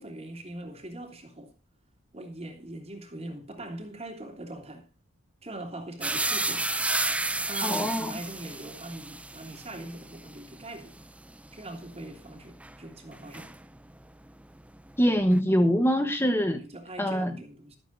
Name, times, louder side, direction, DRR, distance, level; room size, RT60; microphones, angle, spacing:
voice 1, 0.0-1.5 2.1-4.9 5.4-6.7 7.3-10.9 11.5-13.5 16.6-17.8, right 1 dB, 30° right, 3.1 m, -41 dB
sound 1, 6.0-14.0 14.3-15.4, right 2 dB, 5° right, 0.6 m, -33 dB
voice 2, 7.6-8.2 15.0-16.6 17.0-17.3, equal, 10° left, 1.1 m, -24 dB
13.5 x 13.0 x 2.6 m
head